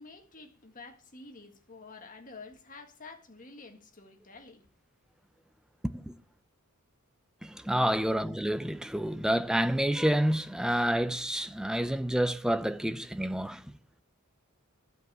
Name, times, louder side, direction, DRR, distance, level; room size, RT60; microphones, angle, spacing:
voice 1, 0.0-4.7, left 3 dB, 40° left, 1.8 m, -49 dB
voice 2, 7.4-13.6, equal, 5° right, 0.5 m, -28 dB
12.0 x 5.4 x 8.8 m
head